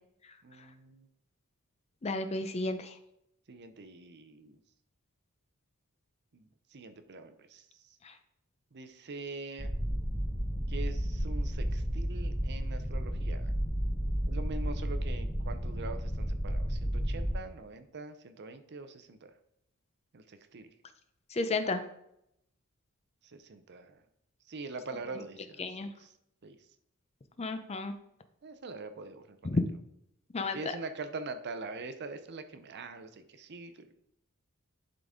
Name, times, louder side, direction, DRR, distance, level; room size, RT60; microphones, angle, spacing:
voice 1, 0.4-1.1 3.5-4.6 6.3-7.6 8.7-9.7 10.7-13.5 14.3-19.3 20.1-20.7 23.3-24.0 24.5-25.6 26.0-26.1 26.4-26.6 28.4-29.6 30.5-33.9, right 3 dB, 50° right, 9 dB, 0.6 m, -43 dB
voice 2, 2.0-2.9 8.0-8.1 21.3-21.8 25.6-25.9 27.4-27.9 29.4-29.6 30.3-30.6, left 3 dB, 30° left, 9 dB, 0.5 m, -32 dB
sound 1, 9.6-17.3, equal, ahead, 0.8 m, -32 dB
11.0 x 4.0 x 3.6 m, 0.77 s
head